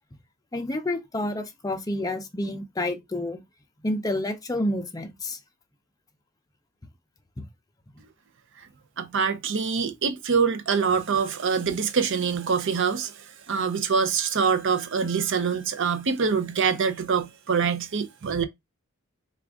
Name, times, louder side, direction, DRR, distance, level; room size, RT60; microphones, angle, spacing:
voice 1, 0.5-3.4 3.8-5.4 7.4-7.5, left 1 dB, 15° left, 0.5 m, -29 dB
voice 2, 9.0-13.1 13.5-18.4, right 6 dB, 60° right, 0.6 m, -25 dB
3.5 x 2.4 x 3.5 m
head